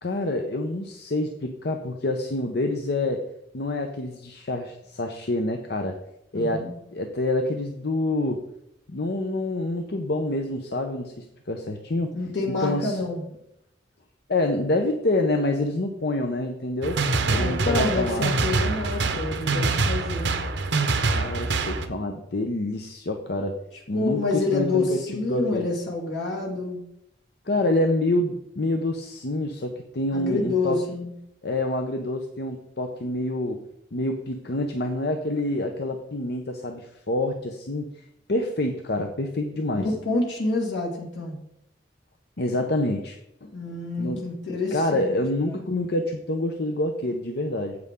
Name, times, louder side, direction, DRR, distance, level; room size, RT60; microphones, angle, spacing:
voice 1, 0.0-3.2 3.5-6.0 6.3-8.4 8.9-12.2 12.6-13.0 14.3-17.0 17.3-18.3 21.1-23.6 23.9-25.0 25.3-25.7 27.5-30.8 31.4-33.6 33.9-37.9 38.3-39.9 42.4-44.2 44.7-47.8, left 2 dB, 60° left, 5 dB, 0.8 m, -27 dB
voice 2, 6.3-6.8 12.1-13.2 17.3-20.3 23.9-26.8 30.1-31.1 39.8-41.4 43.5-45.2 45.4-45.6, left 2 dB, 85° left, -2 dB, 2.2 m, -27 dB
sound 1, 16.8-21.9, right 3 dB, 80° right, 1.0 m, -25 dB
9.7 x 8.0 x 3.7 m, 0.80 s
head